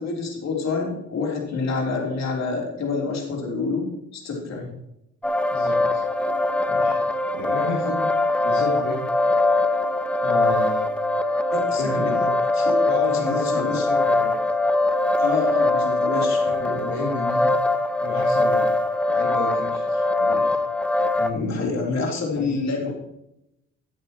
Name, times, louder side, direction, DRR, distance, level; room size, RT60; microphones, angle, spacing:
voice 1, 0.0-4.6 11.5-12.1 12.5-12.8 13.1-13.9 15.2-16.4 21.3-22.9, left 4 dB, 60° left, 0 dB, 3.7 m, -27 dB
sound 1, 5.2-21.3, left 2 dB, 5° left, 0.8 m, -22 dB
voice 2, 5.5-6.0 6.7-7.0 7.3-8.0 8.4-9.0 10.2-11.0 11.8-12.3 12.9-14.4 16.4-17.5 18.0-18.7 19.1-20.6 21.1-21.8 22.3-22.9, left 3 dB, 80° left, -4 dB, 2.5 m, -32 dB
13.5 x 8.9 x 3.0 m, 0.82 s
cardioid pair, 90°, 30 cm